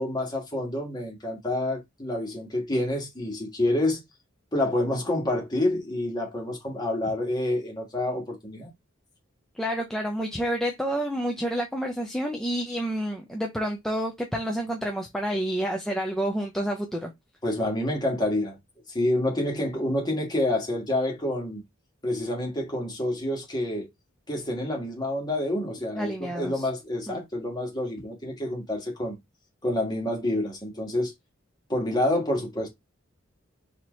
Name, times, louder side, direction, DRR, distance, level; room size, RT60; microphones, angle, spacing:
voice 1, 0.0-4.0 4.5-8.7 17.4-18.6 18.9-21.6 22.0-23.9 24.3-29.1 29.6-31.1 31.7-32.7, left 1 dB, 20° left, 1.5 m, -28 dB
voice 2, 9.5-17.1 25.9-26.7 27.1-27.2, right 1 dB, ahead, 0.5 m, -29 dB
4.4 x 2.8 x 3.0 m
head